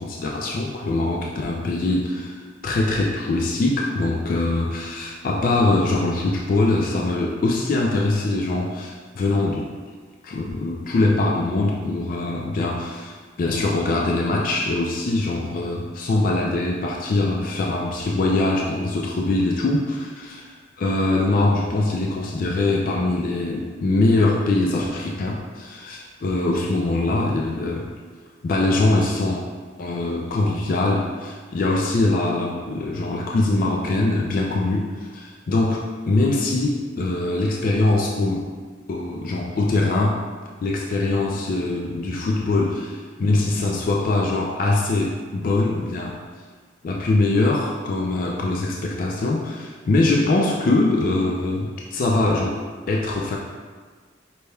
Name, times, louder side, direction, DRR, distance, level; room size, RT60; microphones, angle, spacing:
voice 1, 0.0-9.7 10.2-27.8 28.4-29.4 29.8-38.5 38.9-40.2 40.6-46.2 46.8-52.6 52.9-53.4, left 2 dB, 45° left, -1 dB, 0.3 m, -22 dB
5.2 x 3.3 x 2.3 m, 1.5 s
head